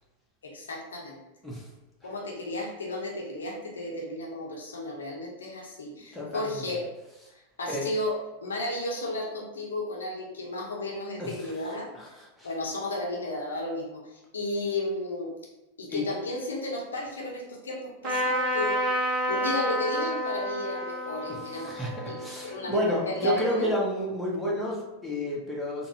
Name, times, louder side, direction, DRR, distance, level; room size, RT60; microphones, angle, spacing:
voice 1, 0.4-1.2 2.0-6.8 7.6-11.9 12.4-15.3 15.8-18.8 19.3-23.7, left 1 dB, 70° left, -2 dB, 0.7 m, -33 dB
voice 2, 6.1-6.6 7.7-7.9 11.2-11.3 12.0-12.1 12.4-12.5 15.9-16.0 21.6-25.9, equal, 5° left, -5 dB, 0.9 m, -30 dB
Trumpet, 18.0-23.6, equal, 35° right, 0.6 m, -30 dB
3.9 x 2.1 x 2.7 m, 1.0 s
figure-of-eight pair, 90°, 0 cm